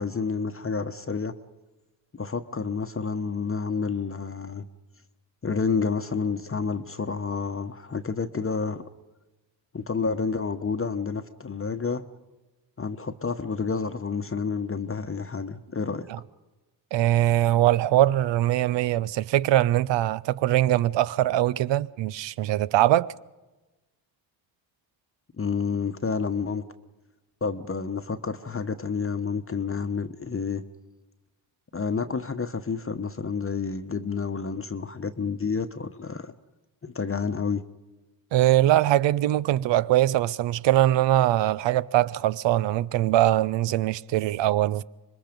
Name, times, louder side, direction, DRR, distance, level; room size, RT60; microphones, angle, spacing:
voice 1, 0.0-1.3 2.1-4.6 5.4-8.8 9.7-12.0 12.8-16.0 25.4-26.6 27.4-30.6 31.7-36.3 36.8-37.6, left 5 dB, 25° left, 1.1 m, -29 dB
voice 2, 16.9-23.1 38.3-44.8, right 14 dB, 65° right, 0.7 m, -22 dB
25.5 x 21.0 x 5.2 m
supercardioid pair, 50°, 48 cm